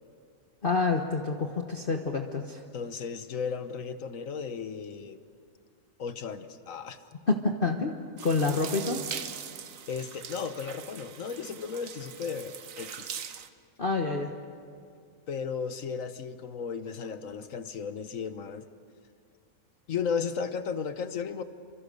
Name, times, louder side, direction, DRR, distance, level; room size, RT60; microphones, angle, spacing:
voice 1, 0.6-2.6 7.3-8.0 8.2-9.1 13.8-14.3, left 3 dB, 40° left, 3 dB, 1.3 m, -27 dB
voice 2, 2.7-5.2 6.0-7.0 9.9-13.1 15.3-18.7 19.9-21.4, left 6 dB, 60° left, 11 dB, 1.4 m, -35 dB
sound 1, 8.2-13.5, right 8 dB, 60° right, 1.3 m, -41 dB
28.0 x 24.5 x 6.7 m, 2.2 s
omnidirectional pair, 1.6 m